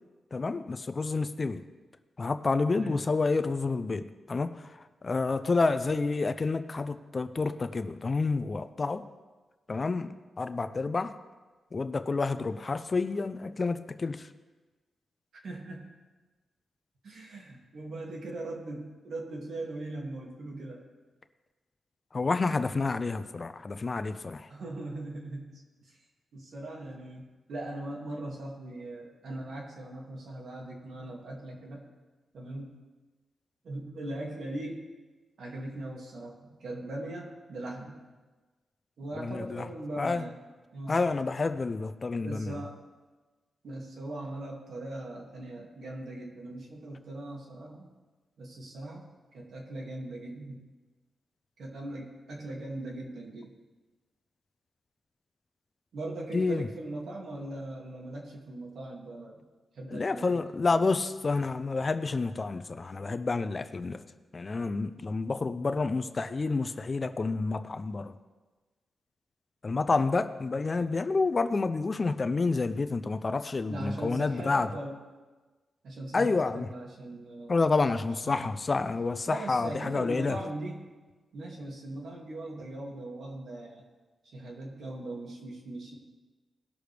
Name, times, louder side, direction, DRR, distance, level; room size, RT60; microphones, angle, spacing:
voice 1, 0.3-1.6 2.2-9.1 9.7-11.1 11.7-14.3 22.1-24.5 39.2-39.7 40.0-40.2 40.9-42.6 56.3-56.7 59.9-64.0 64.3-68.1 69.6-74.7 76.1-76.7 77.5-80.4, left 3 dB, 35° left, 11 dB, 0.5 m, -29 dB
voice 2, 15.3-15.9 17.0-20.8 24.5-26.0 26.3-27.2 27.5-31.8 32.3-32.8 33.6-34.8 35.4-38.0 39.0-40.4 40.7-41.0 42.1-42.8 43.6-47.9 48.4-50.6 51.6-53.5 55.9-59.4 59.7-60.4 60.7-60.8 70.8-70.9 73.7-74.9 75.8-77.6 77.9-78.5 79.3-80.9 81.3-83.8 84.3-86.0, right 2 dB, 75° right, -1 dB, 2.3 m, -40 dB
19.0 x 6.4 x 3.4 m, 1.3 s
wide cardioid pair, 110°, 0 cm